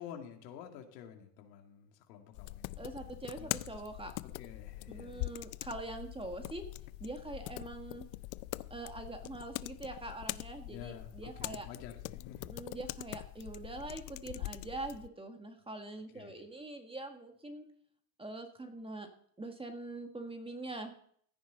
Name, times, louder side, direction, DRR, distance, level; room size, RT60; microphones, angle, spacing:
voice 1, 0.0-3.7 4.2-5.4 10.7-12.5 16.1-16.4, left 9 dB, 80° left, 3 dB, 2.5 m, -50 dB
sound 1, 2.3-15.1, left 20 dB, 60° left, 0.6 m, -43 dB
voice 2, 2.8-4.1 4.9-6.6 7.0-8.0 8.7-11.7 12.4-17.6 18.2-19.1 19.4-20.9, right 2 dB, 10° right, 5 dB, 1.8 m, -43 dB
16.0 x 9.6 x 4.0 m, 0.63 s
supercardioid pair, 100°, 49 cm